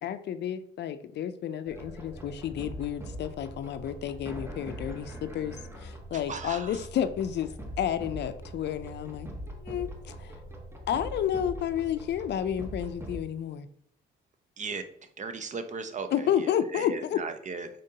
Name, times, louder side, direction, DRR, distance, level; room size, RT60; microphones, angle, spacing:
voice 1, 0.0-10.4 10.9-13.7 16.1-17.2, left 9 dB, 60° left, 11 dB, 0.4 m, -31 dB
sound 1, 1.7-13.2, right 1 dB, 10° right, 1.0 m, -42 dB
voice 2, 6.1-6.8 14.6-14.9 15.2-17.7, right 4 dB, 40° right, 9 dB, 0.6 m, -37 dB
5.1 x 3.7 x 2.8 m, 0.64 s
cardioid pair, 90°, 20 cm